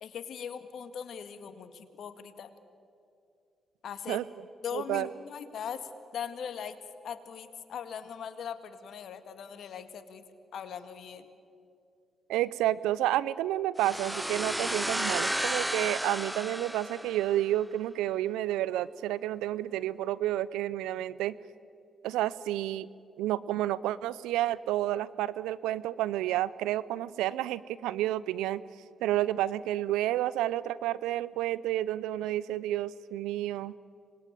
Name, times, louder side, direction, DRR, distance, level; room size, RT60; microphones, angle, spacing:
voice 1, 0.0-2.5 3.8-4.2 4.6-6.8 7.0-10.2 10.5-11.3, left 7 dB, 65° left, 10 dB, 1.9 m, -40 dB
voice 2, 4.7-5.1 12.3-21.4 22.0-22.9 23.2-28.6 29.0-33.7, right 13 dB, 80° right, 19 dB, 0.6 m, -30 dB
sound 1, 13.8-17.5, right 1 dB, 5° right, 0.5 m, -33 dB
26.0 x 21.0 x 9.1 m, 2.5 s
hypercardioid pair, 40°, 0 cm